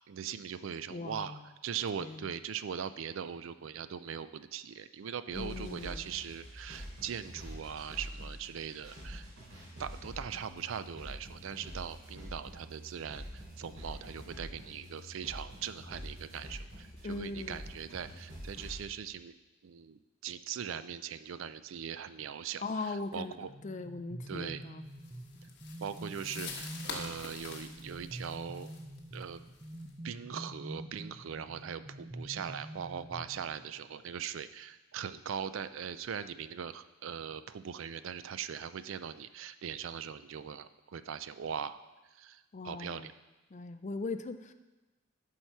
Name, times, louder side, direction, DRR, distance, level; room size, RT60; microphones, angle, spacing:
voice 1, 0.1-9.3 9.8-19.3 19.6-23.5 24.3-24.6 25.8-28.7 29.1-29.4 30.0-41.8 42.1-43.1, right 8 dB, 65° right, 13 dB, 0.4 m, -40 dB
voice 2, 0.9-1.4 2.0-2.3 5.3-6.1 17.0-17.6 22.6-24.8 42.5-43.1 43.5-44.5, left 3 dB, 35° left, 10 dB, 0.4 m, -40 dB
sound 1, 5.3-18.8, equal, 85° right, 3.5 m, -46 dB
sound 2, 23.4-33.8, right 1 dB, 25° right, 0.7 m, -46 dB
sound 3, 25.0-29.9, left 4 dB, 55° left, 1.2 m, -45 dB
11.0 x 5.7 x 4.6 m, 1.1 s
head